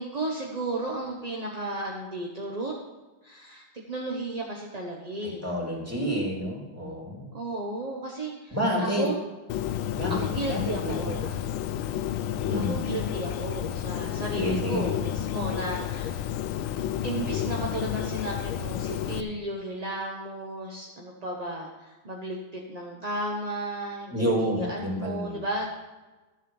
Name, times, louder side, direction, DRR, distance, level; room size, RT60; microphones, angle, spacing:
voice 1, 0.0-2.8 3.2-5.5 7.3-9.2 10.1-11.5 12.5-16.3 17.0-24.1 24.6-25.7, right 2 dB, 25° right, -2 dB, 0.9 m, -34 dB
voice 2, 5.2-7.3 8.5-9.1 9.9-10.1 10.5-11.3 12.5-12.8 14.3-14.8 24.1-25.4, equal, 5° right, -3 dB, 2.8 m, -29 dB
Bird, 9.5-19.2, left 11 dB, 85° left, 1.5 m, -31 dB
13.0 x 7.5 x 5.5 m, 1.2 s
omnidirectional pair, 2.2 m